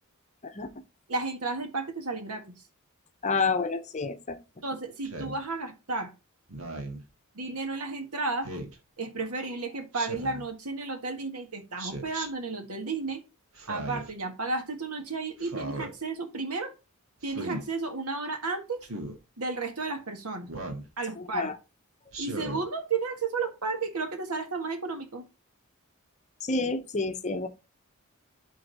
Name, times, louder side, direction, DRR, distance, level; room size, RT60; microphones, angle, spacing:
voice 1, 1.1-2.4 4.6-6.1 7.4-8.5 9.0-13.2 13.7-16.7 17.2-18.9 19.4-20.5 21.0-21.5 22.2-25.2, right 3 dB, 85° right, 1.8 m, -33 dB
voice 2, 3.2-4.4 21.2-21.6 26.4-27.5, left 4 dB, 35° left, 0.7 m, -29 dB
Speech synthesizer, 5.0-5.4 6.5-7.0 8.4-8.8 9.9-10.5 11.8-12.3 13.6-14.1 15.4-15.9 17.2-17.6 18.8-19.2 20.5-20.9 22.1-22.6, right 2 dB, 70° right, 1.7 m, -37 dB
11.5 x 3.9 x 4.1 m
head